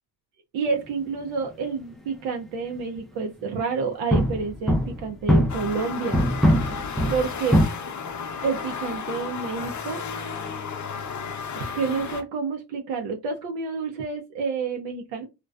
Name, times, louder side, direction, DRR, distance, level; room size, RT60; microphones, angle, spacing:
voice 1, 0.5-6.2 7.1-7.6 8.4-10.1 11.6-15.3, right 4 dB, 75° right, 2 dB, 0.6 m, -29 dB
sound 1, 3.4-3.5 4.1-5.8 6.1-7.6, equal, ahead, 0.3 m, -21 dB
sound 2, 5.5-12.2, left 6 dB, 40° left, 0.6 m, -33 dB
2.4 x 2.2 x 2.3 m, 0.25 s
supercardioid pair, 85°, 47 cm